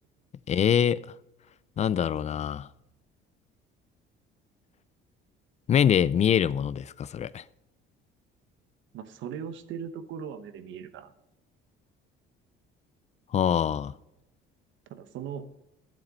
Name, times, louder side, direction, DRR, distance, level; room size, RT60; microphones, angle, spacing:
voice 1, 0.5-1.0 1.8-2.7 5.7-7.4 13.3-13.9, left 9 dB, 35° left, 0.4 m, -24 dB
voice 2, 8.9-11.1 14.9-15.5, right 7 dB, 65° right, 1.0 m, -38 dB
11.5 x 7.5 x 5.3 m
cardioid pair, 115°, 21 cm